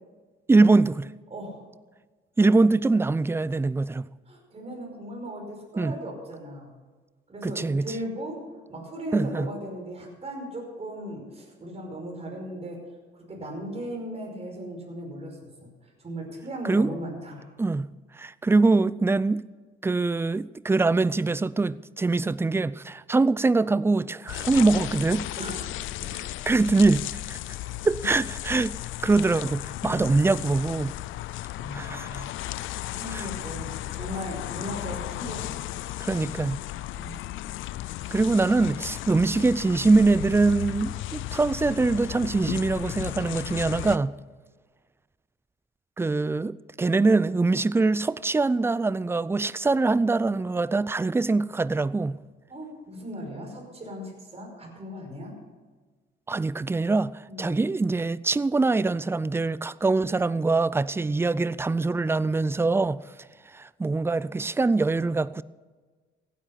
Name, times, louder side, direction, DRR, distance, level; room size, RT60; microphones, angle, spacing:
voice 1, 0.5-1.1 2.4-4.0 5.8-5.9 7.4-7.8 9.1-9.5 16.6-16.9 17.6-17.9 18.2-19.4 19.8-25.2 26.5-27.4 27.8-28.7 29.0-31.0 31.7-32.2 33.1-33.2 36.0-36.6 38.1-44.1 46.0-52.2 56.3-57.1 57.4-63.0 63.5-65.4, right 3 dB, 10° right, 0.4 m, -23 dB
voice 2, 1.3-1.6 4.3-6.7 7.3-8.4 8.7-12.8 13.1-17.5 25.4-26.1 31.6-32.3 32.9-35.7 36.9-37.4 38.3-38.4 52.5-55.4 57.3-57.6, equal, 30° right, 5.2 m, -37 dB
sound 1, 24.3-44.0, left 15 dB, 80° left, 0.5 m, -35 dB
15.5 x 10.0 x 5.8 m
cardioid pair, 90°, 20 cm